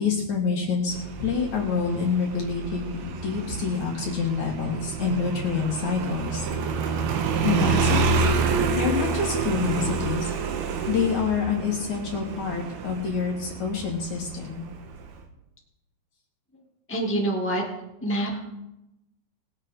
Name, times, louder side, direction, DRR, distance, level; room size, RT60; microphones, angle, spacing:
voice 1, 0.0-6.5 7.4-8.3 8.7-14.7, left 5 dB, 50° left, -1 dB, 2.5 m, -27 dB
Motorcycle, 0.9-15.2, right 4 dB, 70° right, 2.7 m, -28 dB
voice 2, 16.9-17.6 18.0-18.4, right 1 dB, 10° left, -2 dB, 0.6 m, -26 dB
21.0 x 8.8 x 3.8 m, 0.92 s
omnidirectional pair, 5.2 m